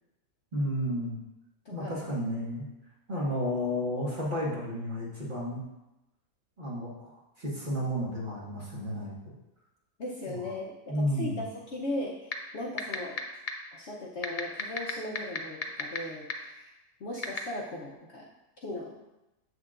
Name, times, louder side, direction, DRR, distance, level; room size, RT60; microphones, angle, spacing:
voice 1, 0.5-1.2 1.7-2.7 3.1-5.7 6.6-7.1 7.4-9.3 10.3-10.5 10.9-11.4, equal, 35° right, -6 dB, 1.6 m, -32 dB
voice 2, 1.6-2.0 10.0-13.2 13.7-16.7 17.0-18.3 18.6-19.0, left 1 dB, 55° left, -3 dB, 0.9 m, -38 dB
sound 1, 12.3-12.4 12.8-13.2 13.5-13.6 14.2-16.0 16.3-16.4 17.2-17.4, left 6 dB, 75° left, 0.4 m, -29 dB
7.8 x 6.5 x 2.5 m, 0.96 s
omnidirectional pair, 1.6 m